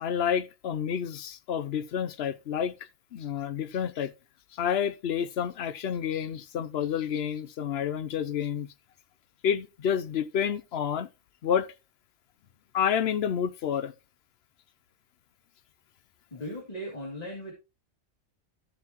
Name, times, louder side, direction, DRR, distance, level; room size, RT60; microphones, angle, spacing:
voice 1, 0.0-2.7 3.1-4.1 4.5-8.7 9.4-11.1 11.4-11.7 12.7-13.9, left 8 dB, 60° left, 0.8 m, -29 dB
voice 2, 16.3-17.5, equal, 30° left, 2.7 m, -37 dB
13.5 x 6.9 x 3.0 m
omnidirectional pair, 1.4 m